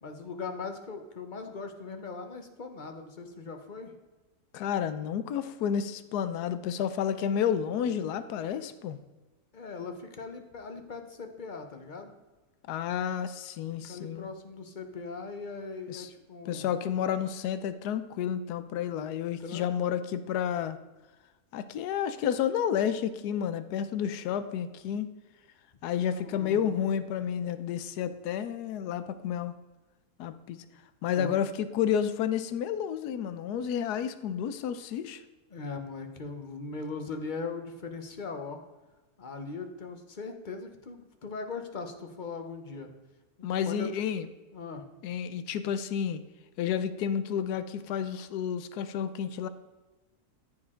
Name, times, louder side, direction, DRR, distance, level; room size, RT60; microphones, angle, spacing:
voice 1, 0.0-3.9 9.5-12.1 13.9-16.7 19.4-19.7 26.0-26.9 31.1-31.4 35.5-38.6 39.2-42.9 43.4-43.9 44.5-44.8, left 4 dB, 35° left, 5 dB, 0.9 m, -40 dB
voice 2, 4.5-9.0 12.7-14.3 15.9-16.1 16.5-20.8 21.5-25.1 25.8-29.5 30.2-30.6 31.0-35.2 43.4-44.3 45.0-46.2 46.6-49.5, left 8 dB, 80° left, 11 dB, 1.2 m, -31 dB
14.0 x 4.7 x 3.7 m, 1.2 s
omnidirectional pair, 1.7 m